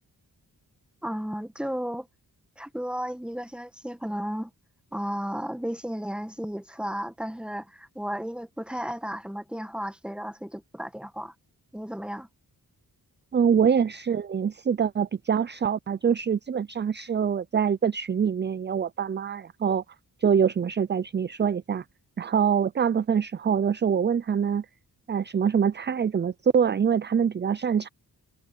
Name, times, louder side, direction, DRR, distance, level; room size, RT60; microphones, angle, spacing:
voice 1, 1.0-2.1 2.6-4.5 4.9-11.3 11.7-12.3, equal, 5° right, 1.7 m, -34 dB
voice 2, 13.3-19.8 20.2-21.8 22.2-24.7 25.1-27.9, right 7 dB, 30° right, 0.4 m, -24 dB
cardioid pair, 65°, 39 cm